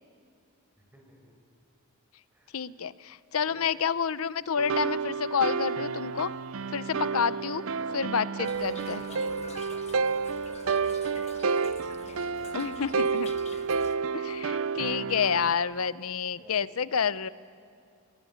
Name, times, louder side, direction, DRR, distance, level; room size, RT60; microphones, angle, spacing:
voice 1, 0.8-1.4 2.3-2.7 3.4-3.7 7.1-8.1 8.6-13.7 14.8-15.1 16.4-16.7, right 1 dB, 10° right, 1 dB, 5.3 m, -54 dB
voice 2, 2.5-6.3 6.7-7.6 7.9-9.0 12.5-13.3 14.1-17.3, left 6 dB, 75° left, 16 dB, 0.7 m, -29 dB
sound 1, 4.6-15.5, right 5 dB, 65° right, 0.5 m, -30 dB
Toilet flush / Trickle dribble, 8.4-14.0, left 5 dB, 30° left, 0.9 m, -49 dB
29.5 x 17.0 x 9.9 m, 2.5 s
head